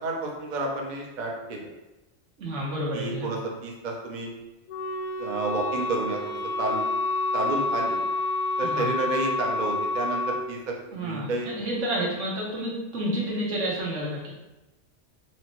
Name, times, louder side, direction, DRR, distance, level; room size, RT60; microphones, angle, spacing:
voice 1, 0.0-1.6 2.9-4.3 5.2-6.8 7.3-8.0 8.6-10.2 10.5-10.7 11.0-11.5, right 2 dB, 45° right, 0 dB, 0.7 m, -30 dB
voice 2, 2.4-3.3 8.6-8.9 10.9-14.3, right 1 dB, 85° right, -4 dB, 1.4 m, -30 dB
Wind instrument woodwind instrument, 4.7-10.5, left 2 dB, 50° left, 0.6 m, -28 dB
4.3 x 3.0 x 2.9 m, 1.0 s
omnidirectional pair, 1.2 m